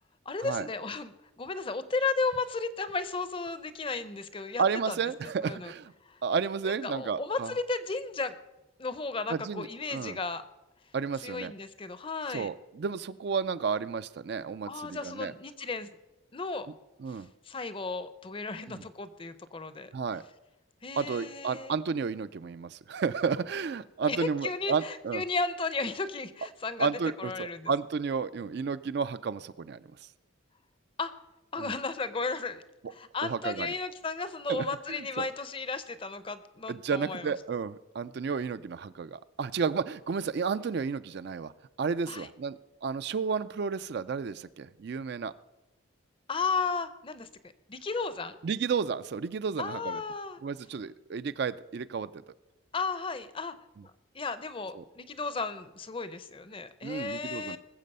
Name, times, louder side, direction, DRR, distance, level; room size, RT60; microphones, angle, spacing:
voice 1, 0.3-5.0 5.4-5.7 6.0-6.2 6.6-8.3 8.8-10.4 11.2-12.5 14.7-15.9 16.3-16.7 17.1-19.9 20.8-21.8 24.1-26.9 27.2-27.7 31.0-31.1 31.5-32.6 32.9-37.3 42.1-42.3 46.3-47.3 47.7-48.4 49.6-50.4 52.7-53.5 54.1-57.6, left 4 dB, 25° left, 13 dB, 0.6 m, -34 dB
voice 2, 4.6-5.9 6.2-7.5 9.3-10.2 10.9-11.5 12.3-15.3 17.0-17.3 18.7-18.8 19.9-20.2 21.0-25.2 26.8-29.9 31.6-31.7 33.2-33.7 34.5-35.3 36.7-41.5 41.8-45.3 48.4-50.0 50.4-52.3 54.7-54.8 56.8-57.6, right 5 dB, 50° right, 14 dB, 0.4 m, -32 dB
20.0 x 7.5 x 5.4 m, 1.0 s
head